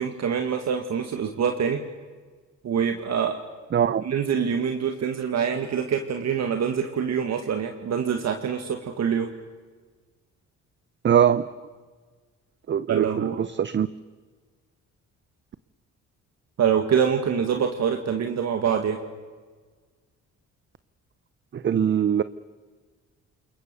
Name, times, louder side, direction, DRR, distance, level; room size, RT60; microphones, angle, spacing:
voice 1, 0.0-1.8 2.6-3.4 4.0-9.3 12.9-13.4 16.6-19.0, right 7 dB, 60° right, 5 dB, 1.9 m, -25 dB
voice 2, 3.7-4.0 11.0-11.5 12.7-13.9 21.5-22.2, right 9 dB, 40° right, 15 dB, 0.7 m, -22 dB
28.0 x 22.0 x 6.9 m, 1.5 s
cardioid pair, 90°, 30 cm